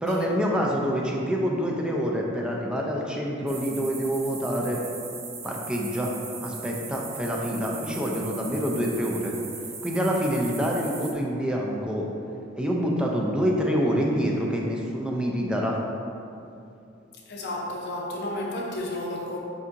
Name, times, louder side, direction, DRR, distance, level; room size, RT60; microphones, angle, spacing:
voice 1, 0.0-4.8 5.4-6.1 6.4-9.3 9.8-12.1 12.6-15.8, equal, 5° right, -2 dB, 0.4 m, -26 dB
sound 1, 3.5-11.1, right 5 dB, 75° right, 0.6 m, -39 dB
voice 2, 17.3-19.4, left 1 dB, 55° left, -2 dB, 0.7 m, -32 dB
7.1 x 2.7 x 2.5 m, 2.6 s
head